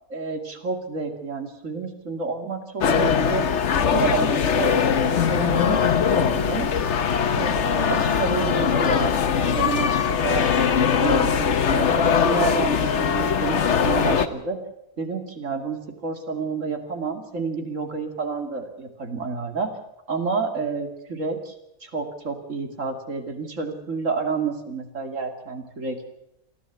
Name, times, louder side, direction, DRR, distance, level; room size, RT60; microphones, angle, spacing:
voice 1, 0.1-3.5 3.8-6.7 7.4-10.4 10.8-13.6 13.8-14.6 15.0-19.7 20.1-21.5 21.8-26.1, right 4 dB, 60° right, 5 dB, 2.8 m, -29 dB
sound 1, 2.8-14.3, left 7 dB, 55° left, 1.2 m, -21 dB
29.0 x 11.0 x 8.2 m, 0.84 s
omnidirectional pair, 1.5 m